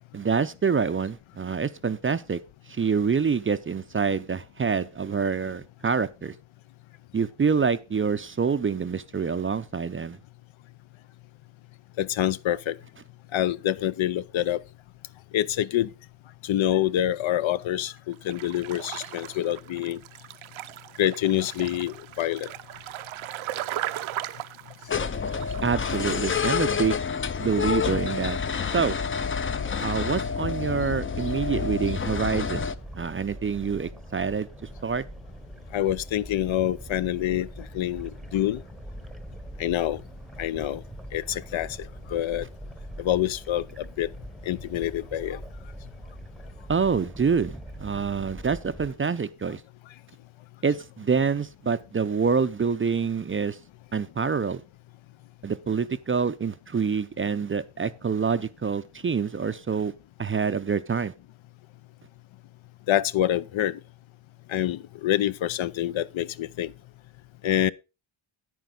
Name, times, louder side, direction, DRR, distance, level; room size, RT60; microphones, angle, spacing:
voice 1, 0.1-2.4 2.7-6.3 7.1-10.2 25.6-27.0 27.4-28.4 28.7-29.0 29.8-32.7 32.9-35.0 46.7-49.6 50.6-53.6 53.9-54.6 55.4-59.9 60.2-61.1, right 5 dB, 25° right, 0.5 m, -26 dB
voice 2, 12.0-12.8 13.3-14.6 15.3-15.9 16.4-20.0 21.0-22.5 35.7-37.5 37.7-38.6 39.6-40.0 40.4-40.8 41.1-42.5 43.0-44.1 44.5-45.4 62.9-63.8 64.5-66.7 67.4-67.7, left 12 dB, 70° left, 0.6 m, -26 dB
sound 1, 18.1-26.5 26.8-26.9, right 13 dB, 70° right, 0.7 m, -37 dB
sound 2, 24.9-32.7, left 6 dB, 25° left, 0.5 m, -28 dB
sound 3, 31.0-48.9, right 1 dB, ahead, 0.8 m, -42 dB
10.0 x 9.3 x 3.8 m
wide cardioid pair, 125°, 49 cm